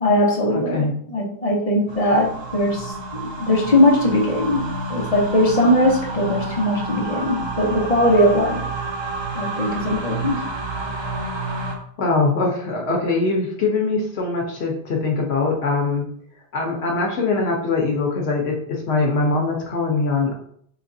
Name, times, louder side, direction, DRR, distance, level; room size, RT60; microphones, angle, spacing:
voice 1, 0.0-4.6 4.9-8.6 9.3-10.4, left 1 dB, 40° left, -1 dB, 0.9 m, -20 dB
voice 2, 0.5-0.9 12.0-16.1 16.5-20.4, left 3 dB, 80° left, 0 dB, 1.0 m, -22 dB
sound 1, 1.9-11.7, right 2 dB, 30° right, 0.6 m, -29 dB
4.9 x 2.9 x 2.6 m, 0.64 s
omnidirectional pair, 1.1 m